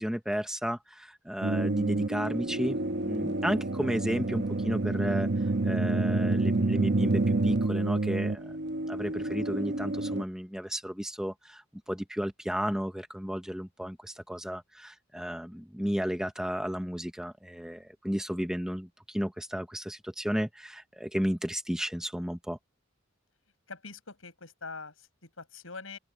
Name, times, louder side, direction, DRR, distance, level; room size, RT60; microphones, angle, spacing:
voice 1, 0.0-5.3 5.6-8.5 8.9-22.6, equal, 5° right, 0.8 m, -33 dB
sound 1, 1.4-10.2, right 2 dB, 55° right, 0.9 m, -28 dB
voice 2, 23.7-26.0, left 4 dB, 90° left, 7.7 m, -44 dB
open air
head